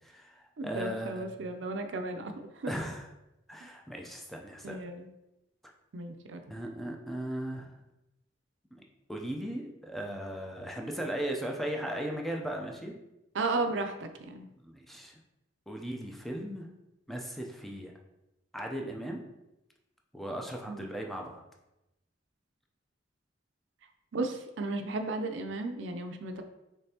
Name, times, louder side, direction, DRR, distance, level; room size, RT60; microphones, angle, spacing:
voice 1, 0.0-1.6 2.7-3.1 3.5-4.8 6.5-7.8 8.7-8.8 9.1-13.0 14.6-15.2 15.7-16.7 17.1-17.9 18.5-19.2 20.1-21.4, right 1 dB, ahead, 1 dB, 0.5 m, -37 dB
voice 2, 0.6-2.7 3.6-3.7 4.6-5.1 5.9-6.4 13.3-14.5 20.7-20.9 24.1-26.4, right 3 dB, 80° right, 6 dB, 0.5 m, -34 dB
5.1 x 3.3 x 2.8 m, 0.93 s
head